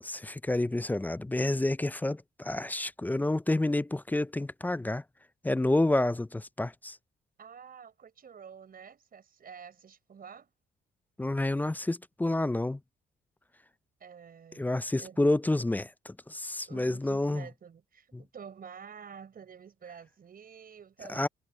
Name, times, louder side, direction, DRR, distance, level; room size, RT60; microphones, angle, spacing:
voice 1, 0.0-5.0 5.4-7.0 11.2-12.8 14.6-17.5 18.1-18.2 21.1-21.3, left 2 dB, 10° left, 0.4 m, -29 dB
voice 2, 7.4-10.5 14.0-14.7 14.9-15.2 16.7-21.3, right 7 dB, 50° right, 4.8 m, -49 dB
cardioid pair, 90°, 20 cm